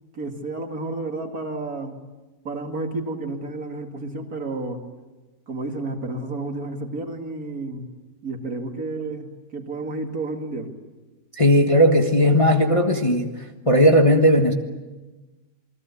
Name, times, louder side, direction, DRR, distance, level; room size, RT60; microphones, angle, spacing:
voice 1, 0.1-2.0 2.4-4.8 5.5-7.9 8.2-10.7, right 2 dB, 55° right, 4 dB, 2.7 m, -31 dB
voice 2, 11.4-13.3 13.6-14.5, equal, 20° left, 3 dB, 1.5 m, -16 dB
28.0 x 21.0 x 8.4 m, 1.2 s
omnidirectional pair, 1.9 m